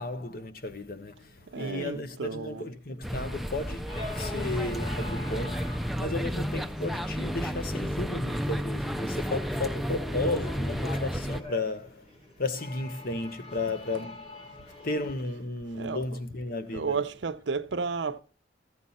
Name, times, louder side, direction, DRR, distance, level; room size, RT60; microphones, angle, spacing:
voice 1, 0.0-12.1 12.4-14.3 14.8-17.0, left 2 dB, 55° left, 1.0 m, -34 dB
voice 2, 1.5-2.6 15.7-16.0 16.7-18.2, right 4 dB, 85° right, 0.6 m, -32 dB
sound 1, 3.0-11.4, equal, ahead, 0.4 m, -32 dB
sound 2, 3.9-15.1, left 3 dB, 35° left, 4.0 m, -45 dB
14.0 x 7.5 x 4.2 m
head